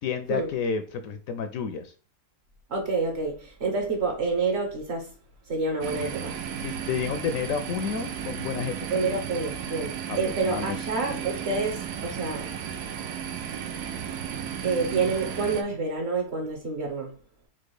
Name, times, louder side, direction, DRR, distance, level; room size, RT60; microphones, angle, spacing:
voice 1, 0.0-1.9 6.6-9.0 10.1-10.8, left 6 dB, 70° left, 0.9 m, -30 dB
voice 2, 2.7-5.1 5.5-6.4 8.9-12.5 14.6-17.2, right 4 dB, 50° right, 1.1 m, -28 dB
sound 1, 5.8-15.6, right 8 dB, 85° right, 1.2 m, -34 dB
4.4 x 2.4 x 4.7 m
omnidirectional pair, 1.6 m